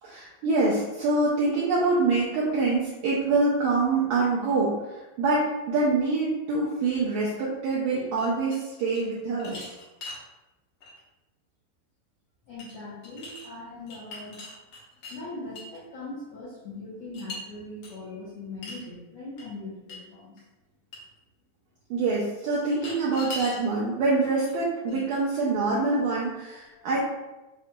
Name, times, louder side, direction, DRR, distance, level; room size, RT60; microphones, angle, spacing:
voice 1, 0.0-9.7 21.9-27.0, right 3 dB, 80° right, -6 dB, 1.7 m, -25 dB
sound 1, 8.2-9.0 9.4-10.2 10.8-11.0 12.6-12.7 13.0-13.5 13.9-15.2 15.5-15.8 17.1-17.4 17.8-17.9 18.6-18.9 19.4-19.5 19.9-20.0 20.4-20.5 20.9-21.0 22.7-23.6 24.5-24.6 24.9-25.4, left 2 dB, 65° left, 1.6 m, -40 dB
voice 2, 12.5-14.4 15.1-20.4 21.0-21.1 26.7-26.9, left 2 dB, 85° left, -8 dB, 1.4 m, -40 dB
6.0 x 2.8 x 2.2 m, 1.0 s
omnidirectional pair, 4.1 m